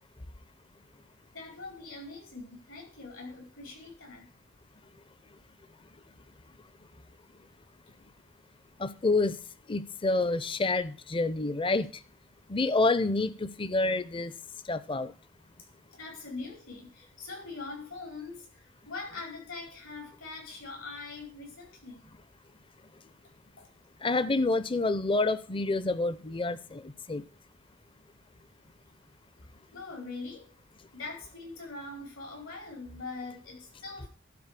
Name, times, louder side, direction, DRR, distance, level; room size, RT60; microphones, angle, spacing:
voice 1, 1.3-4.3 15.9-22.1 23.6-23.7 29.7-30.5 30.9-34.1, left 3 dB, 85° left, 4.8 m, -42 dB
voice 2, 8.8-9.4 9.7-11.9 12.5-14.3 14.7-15.1 24.0-27.2, left 3 dB, 25° left, 0.5 m, -28 dB
12.0 x 4.3 x 7.4 m
head